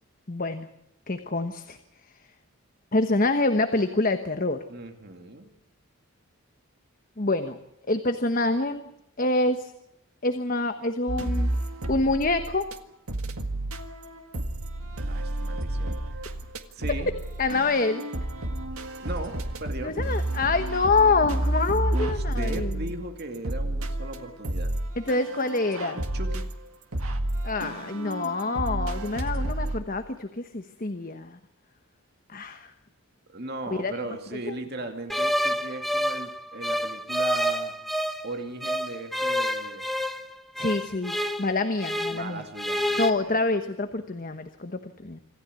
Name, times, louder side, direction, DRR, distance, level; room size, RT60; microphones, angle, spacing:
voice 1, 0.3-0.7 1.1-1.8 2.9-4.6 7.2-7.6 7.9-8.9 9.2-9.7 10.2-11.6 11.9-12.6 17.4-18.0 19.8-22.7 25.1-26.0 27.4-31.4 32.3-32.7 33.8-33.9 34.5-34.6 40.6-42.5 43.0-45.2, left 3 dB, 40° left, 8 dB, 1.2 m, -26 dB
voice 2, 4.7-5.5 15.1-16.3 16.7-17.1 19.0-19.3 19.6-19.9 21.9-24.7 26.1-26.4 33.3-37.7 38.2-39.9 42.1-43.4, right 2 dB, 45° right, 5 dB, 2.4 m, -37 dB
sound 1, 11.1-12.8 13.1-29.8, right 1 dB, 80° right, 1.8 m, -31 dB
sound 2, 35.1-38.3 38.6-42.3 42.5-43.1, equal, ahead, 1.1 m, -28 dB
26.5 x 15.0 x 9.6 m, 0.80 s
head